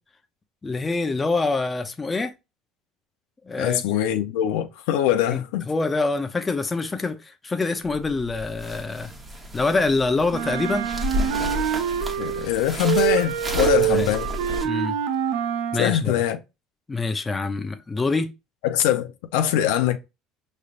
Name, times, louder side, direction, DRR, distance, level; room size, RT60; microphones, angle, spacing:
voice 1, 0.6-2.3 3.4-3.8 5.3-9.1 9.5-10.9 13.7-14.1 14.6-15.0 15.7-16.1 16.9-18.3, left 3 dB, 20° left, 0.6 m, -25 dB
voice 2, 3.6-5.6 12.2-14.3 15.8-16.4 18.6-20.0, left 11 dB, 85° left, 0.6 m, -23 dB
sound 1, 7.8-14.7, equal, 20° right, 1.1 m, -32 dB
Wind instrument woodwind instrument, 10.3-12.5 12.8-15.9, right 10 dB, 80° right, 0.5 m, -25 dB
5.4 x 3.2 x 2.5 m
supercardioid pair, 115°, 0 cm